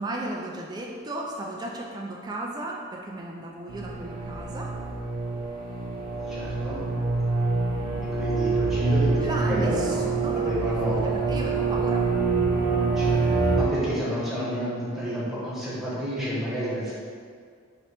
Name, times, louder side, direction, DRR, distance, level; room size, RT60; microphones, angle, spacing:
voice 1, 0.0-4.7 9.2-12.0, right 1 dB, 20° right, -2 dB, 0.3 m, -35 dB
sound 1, 3.7-13.6, right 3 dB, 45° right, 0.7 m, -26 dB
voice 2, 6.3-6.8 8.1-11.1 12.9-13.2 13.6-16.9, equal, ahead, -9 dB, 1.0 m, -30 dB
3.2 x 2.9 x 4.3 m, 2.1 s
head